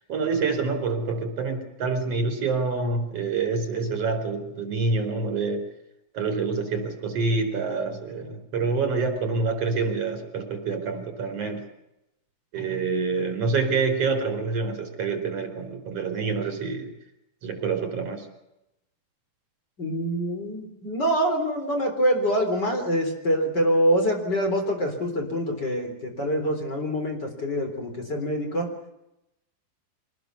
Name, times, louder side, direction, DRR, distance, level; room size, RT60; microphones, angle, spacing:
voice 1, 0.1-5.6 6.1-11.6 12.5-16.9 17.4-18.3, right 4 dB, 40° right, 6 dB, 5.2 m, -27 dB
voice 2, 19.8-28.7, equal, 25° left, 4 dB, 4.1 m, -25 dB
26.0 x 19.5 x 7.0 m, 0.89 s
omnidirectional pair, 4.5 m